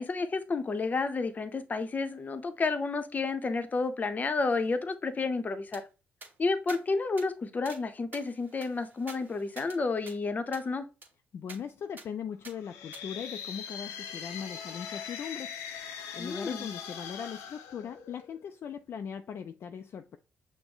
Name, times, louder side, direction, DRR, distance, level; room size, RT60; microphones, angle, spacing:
voice 1, 0.0-5.8 6.4-10.8 16.2-16.7, left 3 dB, 35° left, 0.7 m, -31 dB
sound 1, 5.7-5.8 6.2-6.3 6.7-6.8 7.2-7.3 7.7-7.8 8.1-9.8 10.1-10.2 10.5-10.7 11.0-11.1 11.5-11.6 12.0-12.1 12.4-12.6 12.9-13.0, right 3 dB, 40° right, 1.5 m, -48 dB
voice 2, 11.3-15.5 16.1-20.2, left 7 dB, 55° left, 0.4 m, -39 dB
sound 2, 12.5-18.5, left 7 dB, 90° left, 0.7 m, -41 dB
6.0 x 2.1 x 3.8 m
supercardioid pair, 60°, 5 cm